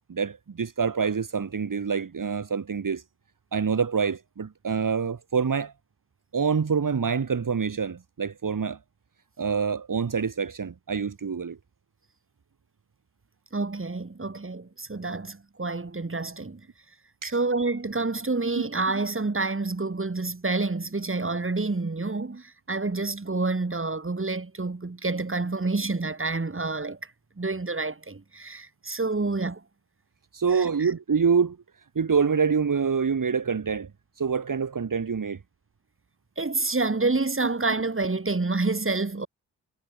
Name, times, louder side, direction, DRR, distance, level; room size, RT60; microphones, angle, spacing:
voice 1, 0.1-3.0 3.5-5.7 6.3-8.8 9.4-11.6 17.2-17.3 30.3-31.6 31.9-33.9 34.2-35.4, right 6 dB, 50° right, 3.2 m, -26 dB
voice 2, 13.5-16.6 17.2-27.1 27.4-29.6 30.5-30.9 36.4-39.3, right 3 dB, 30° right, 6.0 m, -28 dB
supercardioid pair, 45°, 40 cm